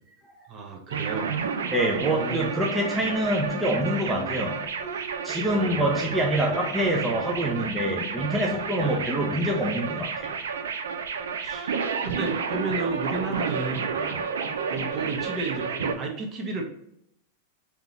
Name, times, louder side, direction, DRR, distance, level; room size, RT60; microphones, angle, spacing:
voice 1, 0.5-1.3 2.1-2.5 5.4-5.9 8.8-9.1 11.4-14.0 14.7-16.6, right 3 dB, 35° right, 0.9 m, -33 dB
sound 1, 0.9-15.9, right 6 dB, 85° right, 0.5 m, -31 dB
voice 2, 1.7-10.3 14.0-14.2, right 1 dB, 10° right, 0.7 m, -26 dB
3.6 x 2.9 x 3.7 m
hypercardioid pair, 115°, 0 cm